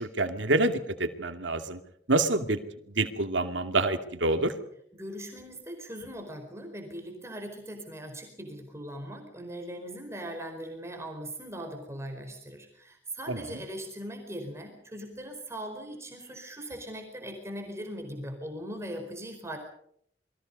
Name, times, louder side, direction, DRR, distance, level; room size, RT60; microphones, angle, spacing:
voice 1, 0.0-1.8 2.1-2.6 3.0-4.5 13.3-13.5, right 2 dB, 80° right, 7 dB, 2.5 m, -27 dB
voice 2, 4.9-19.6, equal, 15° right, 3 dB, 4.7 m, -40 dB
28.5 x 22.5 x 5.5 m, 0.69 s
head